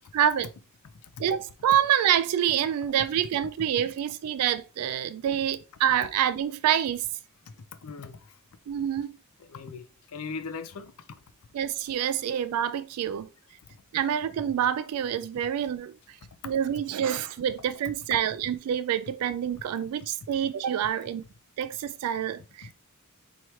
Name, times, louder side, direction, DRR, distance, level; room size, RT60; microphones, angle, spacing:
voice 1, 0.1-0.5 1.2-7.0 8.7-9.2 11.5-13.3 13.9-15.9 16.4-21.2 21.6-22.7, right 9 dB, 85° right, 0.3 m, -27 dB
voice 2, 7.8-8.3 9.4-11.2 16.4-16.5 22.6-22.7, left 5 dB, 75° left, 0.5 m, -39 dB
4.7 x 2.9 x 3.1 m
head